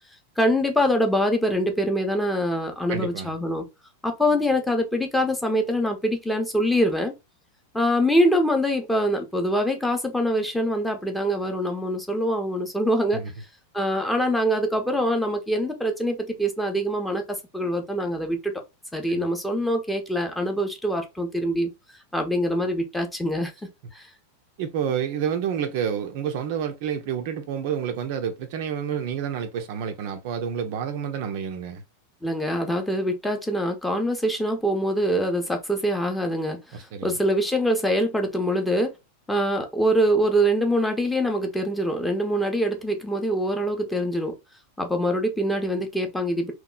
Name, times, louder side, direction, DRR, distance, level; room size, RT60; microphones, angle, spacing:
voice 1, 0.4-3.6 4.0-7.1 7.7-13.2 13.7-17.2 17.5-18.5 18.9-21.7 22.1-23.5 23.9-24.1 32.2-38.9 39.3-44.3 44.8-46.5, equal, 5° left, 0.6 m, -24 dB
voice 2, 2.9-3.3 13.1-13.3 19.1-19.3 24.6-31.8 36.7-37.1, right 8 dB, 50° right, 0.4 m, -29 dB
2.8 x 2.1 x 2.3 m
figure-of-eight pair, 90°, 0 cm